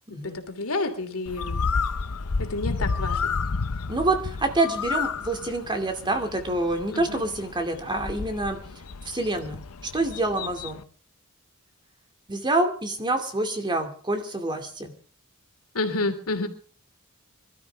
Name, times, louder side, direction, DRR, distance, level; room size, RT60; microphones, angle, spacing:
voice 1, 0.2-1.6 2.4-3.4 6.9-7.2 15.7-16.5, left 2 dB, 70° left, 6 dB, 2.9 m, -29 dB
Bird, 1.3-10.8, left 4 dB, 85° left, 0.8 m, -31 dB
voice 2, 3.9-8.6 9.1-9.6 9.9-10.8 12.3-14.9, right 2 dB, 20° right, 6 dB, 2.4 m, -27 dB
24.0 x 13.0 x 3.5 m, 0.43 s
head